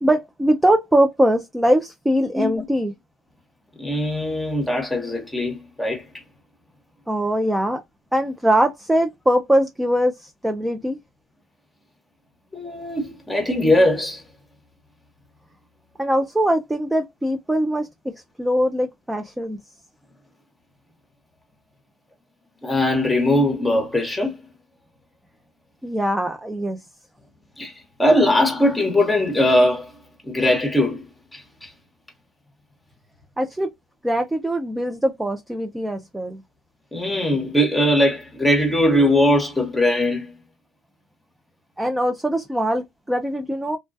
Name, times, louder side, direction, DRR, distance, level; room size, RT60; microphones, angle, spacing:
voice 1, 0.0-2.9 7.1-7.8 8.1-11.0 16.0-19.6 25.8-26.8 33.4-33.7 34.0-36.4 41.8-43.8, equal, 10° right, 0.4 m, -22 dB
voice 2, 2.3-2.7 3.8-6.1 12.5-14.2 22.6-24.4 27.6-27.7 28.0-30.0 30.3-31.1 31.3-31.7 36.9-40.4, left 1 dB, 10° left, 0.9 m, -20 dB
2.2 x 2.2 x 2.5 m
supercardioid pair, 95°, 0 cm